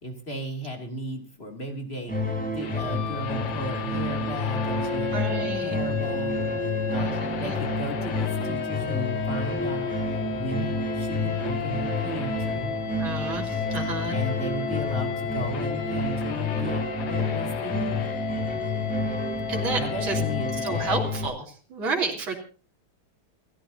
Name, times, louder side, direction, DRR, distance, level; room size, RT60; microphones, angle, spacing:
voice 1, 0.0-6.3 6.6-9.9 10.3-12.7 14.1-18.1 19.8-21.1, equal, 25° left, 3 dB, 3.0 m, -36 dB
sound 1, 2.1-21.3, left 2 dB, 5° left, 5.4 m, -29 dB
sound 2, 2.6-21.0, left 8 dB, 85° left, 2.1 m, -34 dB
voice 2, 5.1-5.8 7.0-7.6 13.0-14.2 19.5-20.2 20.6-22.3, right 3 dB, 65° right, 0 dB, 3.9 m, -31 dB
28.5 x 12.5 x 2.8 m, 0.38 s
omnidirectional pair, 2.4 m